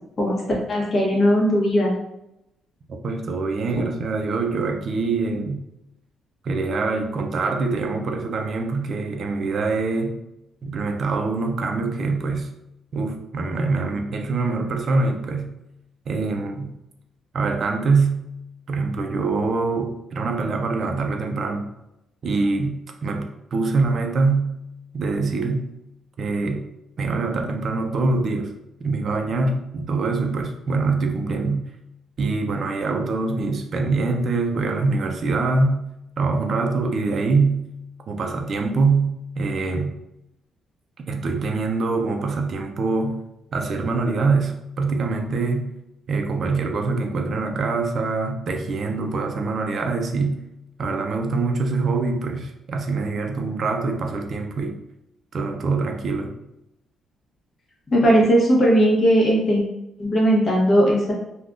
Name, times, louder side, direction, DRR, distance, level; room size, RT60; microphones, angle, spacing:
voice 1, 0.7-1.9 3.7-3.8 57.9-59.6 60.0-61.1, equal, 35° left, -4 dB, 1.2 m, -18 dB
voice 2, 3.0-5.6 6.4-10.2 10.6-12.5 12.9-15.5 16.1-16.7 17.3-18.2 18.7-21.7 22.2-24.5 24.9-25.7 26.2-26.7 27.0-28.5 28.8-31.7 32.2-35.8 36.2-37.6 38.1-39.9 41.1-43.2 43.5-45.7 46.1-50.4 50.8-54.8 55.3-56.3, right 3 dB, 55° right, 4 dB, 0.5 m, -24 dB
3.4 x 2.3 x 2.5 m, 0.86 s
cardioid pair, 90°, 0 cm